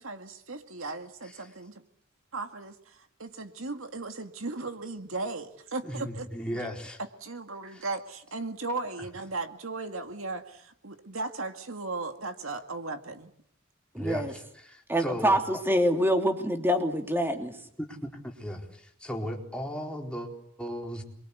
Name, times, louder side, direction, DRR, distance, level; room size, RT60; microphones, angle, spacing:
voice 1, 0.0-1.8 2.3-6.6 7.0-13.3, right 3 dB, 70° right, 6 dB, 2.3 m, -37 dB
voice 2, 5.8-7.0 7.7-7.8 13.9-15.4 17.8-20.3 20.6-21.0, equal, 5° left, 0 dB, 4.3 m, -36 dB
voice 3, 13.9-14.3 14.9-17.5, equal, 10° right, 4 dB, 3.1 m, -25 dB
28.0 x 23.5 x 8.4 m, 0.68 s
head